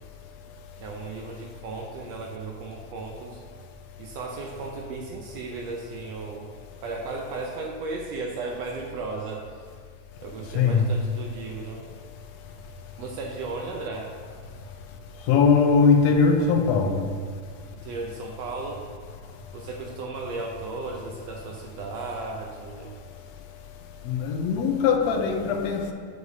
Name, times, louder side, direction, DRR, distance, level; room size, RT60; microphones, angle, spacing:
voice 1, 0.8-3.4 4.0-6.5 6.8-9.6 10.2-11.8 13.0-14.1 17.7-18.8 19.5-22.9, right 3 dB, 75° right, 1.6 m, -35 dB
voice 2, 10.6-10.9 15.3-17.0 24.1-25.9, left 5 dB, 75° left, 1.7 m, -20 dB
8.0 x 6.9 x 2.7 m
omnidirectional pair, 3.4 m